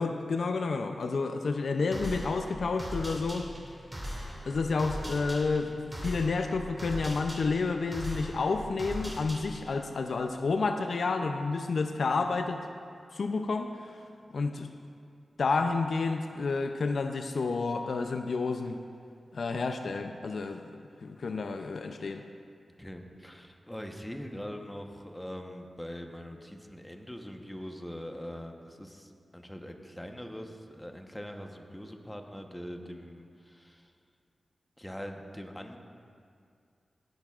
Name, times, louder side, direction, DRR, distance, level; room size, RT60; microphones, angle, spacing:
voice 1, 0.0-3.5 4.5-5.7 6.0-12.6 13.1-14.0 14.3-14.7 15.4-18.8 19.3-22.2, left 4 dB, 75° left, 6 dB, 0.5 m, -30 dB
sound 1, 1.9-9.8, equal, 20° right, 2.4 m, -40 dB
voice 2, 22.8-33.9 34.8-35.8, equal, 10° left, 3 dB, 1.0 m, -42 dB
16.5 x 10.5 x 2.4 m, 2.3 s
cardioid pair, 60°, 0 cm